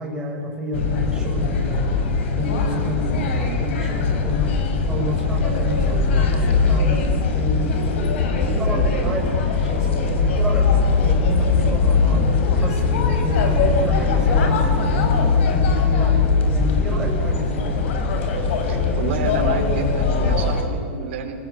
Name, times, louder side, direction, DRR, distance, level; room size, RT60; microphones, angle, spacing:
voice 1, 0.0-4.6 4.9-10.7 11.0-16.2 16.5-17.9, right 1 dB, 10° right, -1 dB, 5.7 m, -30 dB
sound 1, 0.7-20.6, left 4 dB, 70° left, 4.6 m, -20 dB
voice 2, 18.7-21.3, right 5 dB, 65° right, 1 dB, 4.8 m, -29 dB
27.0 x 19.5 x 8.2 m, 2.6 s
supercardioid pair, 155°, 7 cm